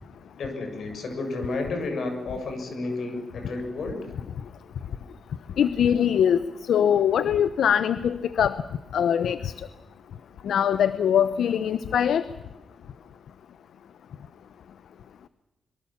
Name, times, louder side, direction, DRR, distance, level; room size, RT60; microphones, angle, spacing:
voice 1, 0.4-4.0, left 3 dB, 55° left, 5 dB, 6.3 m, -31 dB
voice 2, 5.6-6.4 6.7-8.6 8.9-9.5 10.4-12.2, left 9 dB, 75° left, 14 dB, 0.8 m, -22 dB
25.0 x 23.0 x 7.3 m, 1.1 s
wide cardioid pair, 165°, 0 cm